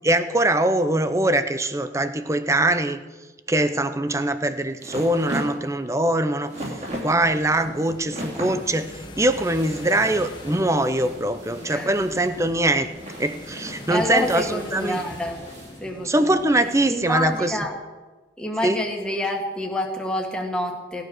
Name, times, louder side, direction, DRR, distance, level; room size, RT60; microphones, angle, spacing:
voice 1, 0.0-3.0 3.5-6.5 7.0-12.9 13.2-15.0 16.0-17.5 18.6-18.8, right 1 dB, 15° right, 11 dB, 0.7 m, -22 dB
sound 1, 4.1-15.8, right 1 dB, 35° right, 3.1 m, -37 dB
sound 2, 6.7-17.6, left 1 dB, 25° left, 1.2 m, -42 dB
voice 2, 13.9-15.4 15.8-16.4 16.9-17.8 18.4-21.0, left 1 dB, 5° left, 1 dB, 1.7 m, -27 dB
17.0 x 9.4 x 6.2 m, 1.3 s
head